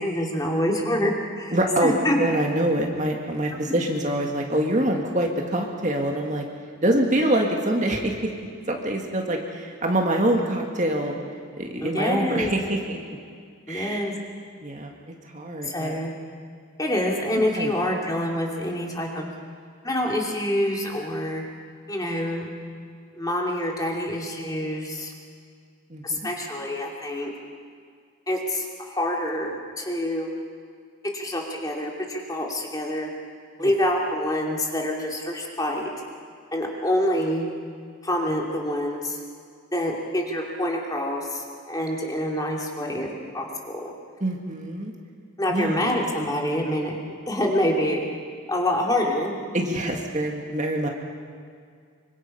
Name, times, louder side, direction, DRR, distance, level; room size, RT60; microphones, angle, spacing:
voice 1, 0.0-2.2 11.8-12.5 13.7-14.1 15.6-16.1 16.8-19.3 19.8-21.4 21.9-22.5 23.2-25.1 26.0-27.3 28.3-30.3 31.1-33.1 33.6-35.9 36.5-37.5 38.0-39.2 39.7-43.1 43.3-43.9 45.4-48.1 48.5-49.4, left 1 dB, 15° left, -1 dB, 2.9 m, -26 dB
voice 2, 1.5-1.9 2.2-6.4 6.8-8.3 8.7-11.1 11.6-13.2 13.7-14.1 14.6-14.9 15.3-16.0 17.6-17.7 25.9-26.2 33.6-33.7 44.2-44.9 45.5-45.9 49.5-50.9, right 1 dB, 35° right, 1 dB, 2.0 m, -25 dB
25.5 x 25.0 x 5.6 m, 2.1 s
head